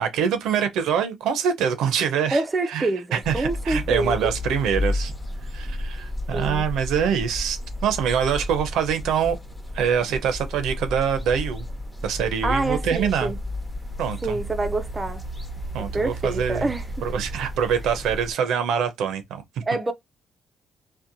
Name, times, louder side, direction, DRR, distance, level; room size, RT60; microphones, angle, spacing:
voice 1, 0.0-2.4 2.7-5.1 5.5-9.4 9.7-11.7 12.0-13.3 14.0-14.4 15.7-16.7 17.0-19.4, right 7 dB, 85° right, 0.5 m, -24 dB
voice 2, 2.3-4.4 6.3-6.7 12.4-13.4 14.2-15.2 15.8-16.9 19.6-19.9, right 2 dB, 25° right, 0.4 m, -26 dB
sound 1, 3.2-18.3, left 1 dB, 5° left, 0.8 m, -32 dB
2.7 x 2.1 x 2.5 m
cardioid pair, 90°, 0 cm